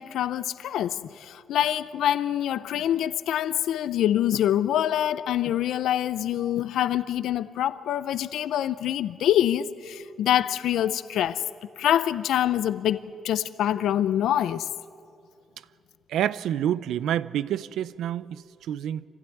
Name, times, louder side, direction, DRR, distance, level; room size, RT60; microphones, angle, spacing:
voice 1, 0.0-11.4 11.8-14.7, left 11 dB, 85° left, 0.6 m, -25 dB
voice 2, 16.1-19.1, right 10 dB, 85° right, 0.5 m, -28 dB
25.0 x 16.0 x 9.3 m
cardioid pair, 130°, 0 cm